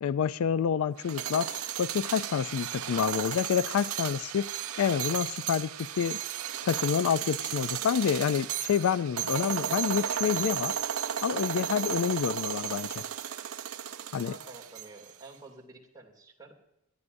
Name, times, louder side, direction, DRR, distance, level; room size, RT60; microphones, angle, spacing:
voice 1, 0.0-4.5 4.8-6.2 6.6-10.8 11.2-13.0 14.1-14.3, left 7 dB, 75° left, 0.3 m, -28 dB
sound 1, 1.0-15.1, right 10 dB, 80° right, 0.6 m, -34 dB
voice 2, 14.1-16.5, right 2 dB, 20° right, 2.5 m, -49 dB
21.5 x 13.5 x 2.6 m
head